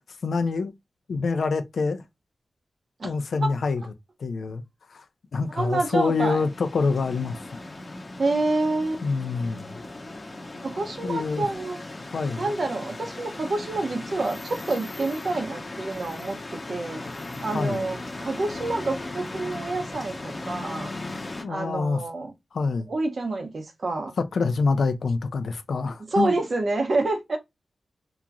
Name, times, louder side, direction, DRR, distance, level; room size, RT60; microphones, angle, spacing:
voice 1, 0.2-0.7 1.1-2.0 3.0-3.8 4.2-4.6 4.9-5.0 5.3-7.4 9.0-9.8 11.0-11.5 12.1-12.4 17.5-17.8 21.4-22.0 22.5-22.9 24.2-26.3, left 4 dB, 80° left, 0.5 m, -26 dB
voice 2, 5.5-6.4 8.2-9.0 10.6-11.8 12.4-17.0 17.4-20.9 21.5-22.3 22.9-24.1 26.1-27.4, right 2 dB, 60° right, 0.9 m, -28 dB
sound 1, 5.6-21.4, left 2 dB, 40° left, 0.8 m, -37 dB
2.9 x 2.5 x 2.3 m
cardioid pair, 65°, 0 cm